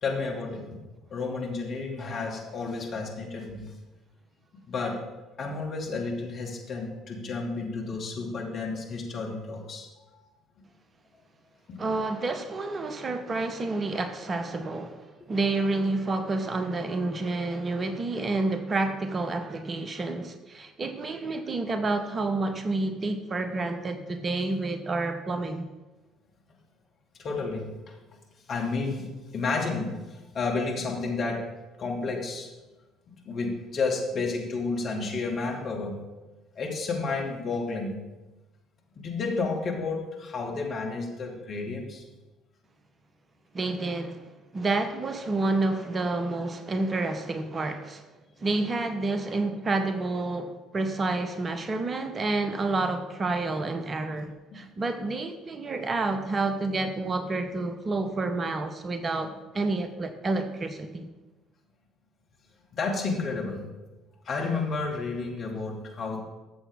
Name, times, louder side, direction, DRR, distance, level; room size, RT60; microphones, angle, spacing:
voice 1, 0.0-0.8 1.1-3.7 4.6-5.0 5.4-9.9 11.7-11.8 27.2-27.7 28.5-29.1 29.3-30.0 30.3-31.5 31.8-32.5 33.2-35.9 36.6-38.0 39.0-42.0 54.5-54.6 62.8-63.6 64.3-66.2, left 3 dB, 45° left, -1 dB, 2.4 m, -31 dB
voice 2, 11.8-25.7 43.5-44.2 44.5-48.0 48.4-61.1, right 3 dB, 30° right, 8 dB, 0.9 m, -29 dB
14.0 x 7.1 x 3.6 m, 1.1 s
figure-of-eight pair, 55°, 0 cm